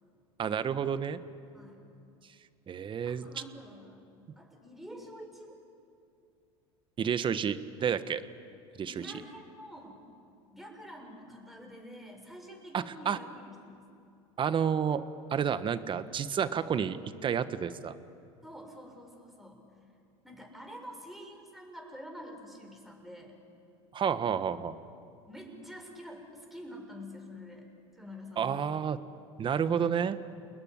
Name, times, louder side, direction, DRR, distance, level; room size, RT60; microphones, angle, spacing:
voice 1, 0.4-1.2 2.7-3.3 7.0-8.2 8.8-9.1 12.7-13.2 14.4-15.0 15.3-17.0 17.2-17.9 23.9-24.7 28.4-29.0 29.4-30.2, right 7 dB, 35° right, 12 dB, 1.4 m, -30 dB
voice 2, 1.5-1.9 3.0-4.0 4.4-5.6 8.8-10.0 10.5-13.9 18.4-19.6 20.2-23.4 25.3-28.8, equal, ahead, 1 dB, 6.9 m, -47 dB
29.5 x 20.0 x 10.0 m, 2.5 s
hypercardioid pair, 90°, 15 cm